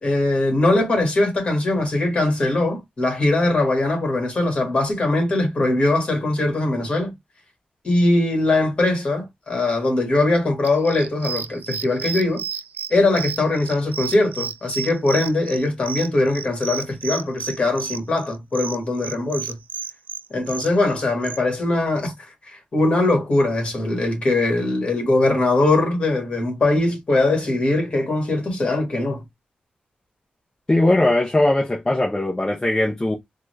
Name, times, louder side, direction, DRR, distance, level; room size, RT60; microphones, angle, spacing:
voice 1, 0.0-7.1 7.8-12.4 12.9-19.6 20.3-22.1 22.5-29.2, left 2 dB, 35° left, 1.7 m, -21 dB
sound 1, 10.6-21.4, right 7 dB, 65° right, 0.3 m, -32 dB
voice 2, 30.7-33.2, left 1 dB, 15° left, 0.6 m, -19 dB
3.8 x 2.2 x 3.1 m
wide cardioid pair, 155°, 3 cm